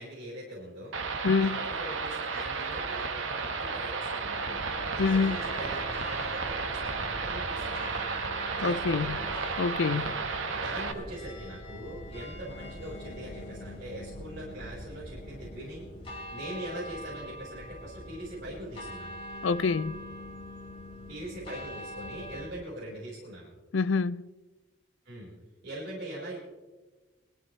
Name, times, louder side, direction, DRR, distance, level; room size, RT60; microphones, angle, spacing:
voice 1, 0.0-4.6 4.9-8.2 8.6-9.2 9.9-10.2 10.5-15.9 16.3-19.2 21.1-23.5 25.0-25.3 25.6-26.4, right 1 dB, 55° right, 4.6 m, -42 dB
sound 1, 0.9-10.9, right 4 dB, 85° right, 1.3 m, -33 dB
voice 2, 1.2-1.6 5.0-5.4 8.6-9.2 9.6-10.1 19.4-20.0 23.7-24.3, left 4 dB, 75° left, 0.5 m, -26 dB
sound 2, 4.3-22.5, left 1 dB, 30° left, 4.5 m, -43 dB
21.5 x 14.5 x 3.2 m
head